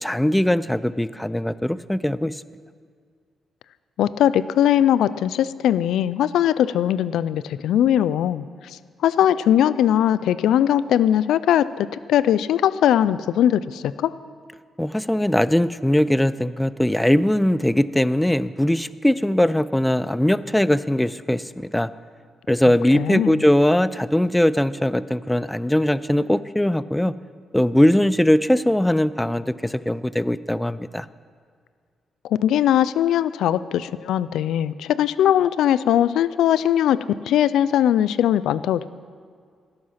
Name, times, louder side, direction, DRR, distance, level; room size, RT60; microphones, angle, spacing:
voice 1, 0.0-2.4 14.8-21.9 22.5-27.1 27.5-31.1, left 1 dB, 5° left, 16 dB, 0.4 m, -20 dB
voice 2, 4.0-14.1 22.9-23.4 32.2-37.0 37.3-38.9, left 10 dB, 85° left, 16 dB, 0.3 m, -20 dB
17.0 x 7.8 x 5.7 m, 2.1 s
cardioid pair, 80°, 0 cm